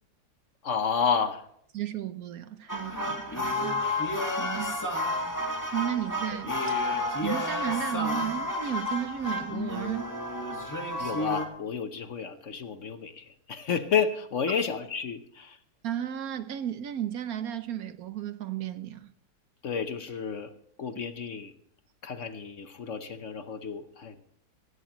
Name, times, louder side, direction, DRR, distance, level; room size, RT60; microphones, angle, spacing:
voice 1, 0.6-1.4 6.3-6.4 11.0-15.6 19.6-20.5 20.8-21.5 22.0-24.2, left 6 dB, 55° left, 1.1 m, -31 dB
voice 2, 1.7-3.8 4.4-4.8 5.7-6.5 7.2-10.1 14.5-14.6 15.8-19.1, right 10 dB, 65° right, 1.1 m, -33 dB
sound 1, 2.7-11.5, left 1 dB, 10° left, 1.7 m, -31 dB
17.5 x 16.0 x 3.0 m
omnidirectional pair, 1.8 m